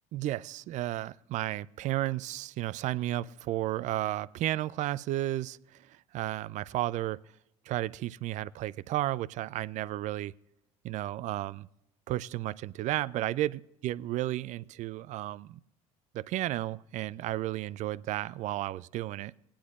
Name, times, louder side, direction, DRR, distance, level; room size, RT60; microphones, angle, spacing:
voice 1, 0.1-7.2 7.7-10.3 10.8-11.7 12.1-15.6 16.1-19.3, right 15 dB, 45° right, 18 dB, 0.4 m, -33 dB
19.5 x 10.0 x 2.4 m, 0.84 s
figure-of-eight pair, 65°, 18 cm